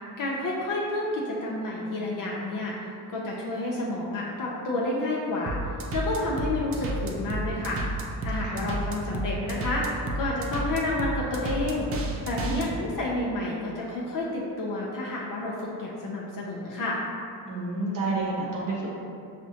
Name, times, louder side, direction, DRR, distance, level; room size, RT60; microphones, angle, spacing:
voice 1, 0.2-5.6 5.9-7.8 8.2-11.9 12.2-17.0, left 2 dB, 55° left, -4 dB, 0.6 m, -30 dB
sound 1, 5.5-12.7, right 2 dB, 35° right, 0.4 m, -31 dB
voice 2, 8.4-8.8 12.4-12.7 17.5-18.9, right 2 dB, 50° right, -5 dB, 0.9 m, -30 dB
5.0 x 2.1 x 2.8 m, 2.5 s
cardioid pair, 90°, 40 cm